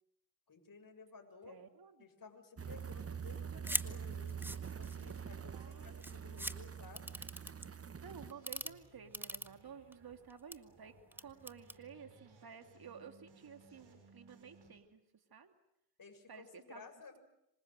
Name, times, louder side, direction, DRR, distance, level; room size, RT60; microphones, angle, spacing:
voice 1, 0.5-1.6 2.0-7.1 16.0-17.2, left 4 dB, 45° left, 5 dB, 7.0 m, -56 dB
voice 2, 1.5-2.1 5.0-6.5 8.0-10.9 11.2-15.5 16.3-16.9, right 6 dB, 50° right, 7 dB, 2.9 m, -54 dB
sound 1, 2.6-8.3, right 7 dB, 30° right, 1.2 m, -45 dB
sound 2, 3.6-3.9 4.3-5.1 5.7-5.8 6.0-6.5 7.0-7.7 8.3-8.7 9.1-9.9 10.3-10.6 11.1-11.8, right 1 dB, 5° right, 1.7 m, -40 dB
sound 3, 8.0-14.7, right 2 dB, 65° right, 7.9 m, -63 dB
26.0 x 25.5 x 7.9 m, 0.80 s
hypercardioid pair, 40°, 46 cm